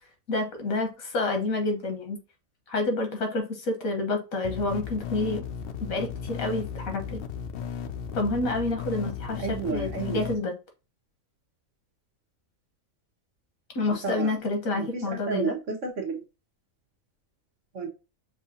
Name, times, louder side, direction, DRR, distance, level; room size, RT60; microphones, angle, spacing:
voice 1, 0.3-2.2 2.7-5.4 5.8-7.2 8.1-10.6 13.7-15.6, left 2 dB, 85° left, 1.6 m, -28 dB
sound 1, 4.4-10.3, left 7 dB, 65° left, 0.6 m, -35 dB
voice 2, 9.4-10.2 14.0-14.3 14.7-15.0 15.3-16.2 17.7-17.9, right 5 dB, 65° right, 1.5 m, -31 dB
6.4 x 2.6 x 2.7 m
omnidirectional pair, 1.4 m